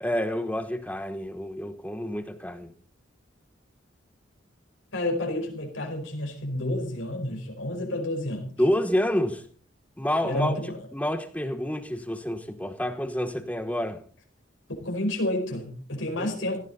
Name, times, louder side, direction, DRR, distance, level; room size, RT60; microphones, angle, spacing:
voice 1, 0.0-2.7 8.6-9.4 10.0-10.6 10.9-14.0 16.2-16.6, equal, 5° left, 1.1 m, -28 dB
voice 2, 4.9-8.5 10.2-10.8 14.8-16.6, left 1 dB, 75° left, 4.8 m, -30 dB
17.5 x 15.0 x 4.1 m
head